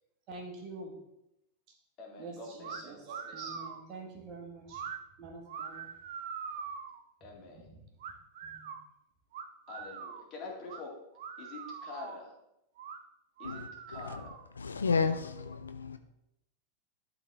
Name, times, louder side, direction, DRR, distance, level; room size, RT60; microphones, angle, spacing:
voice 1, 0.3-0.9 2.2-4.8 5.2-5.9 7.5-7.8 8.4-8.8, right 3 dB, 40° right, 1.7 m, -46 dB
voice 2, 2.0-3.0 7.2-7.7 9.7-11.0 11.4-12.3 13.4-14.3, left 3 dB, 35° left, 2.0 m, -46 dB
sound 1, 2.6-2.8 3.1-3.8 4.7-5.0 5.5-7.0 8.0-8.8 9.3-10.3 10.7-10.8 11.2-12.2 12.8-13.0 13.4-14.5, right 6 dB, 55° right, 0.6 m, -43 dB
voice 3, 13.4-14.2 14.6-16.0, left 5 dB, 75° left, 0.4 m, -32 dB
11.5 x 4.0 x 3.4 m
figure-of-eight pair, 90°, 0 cm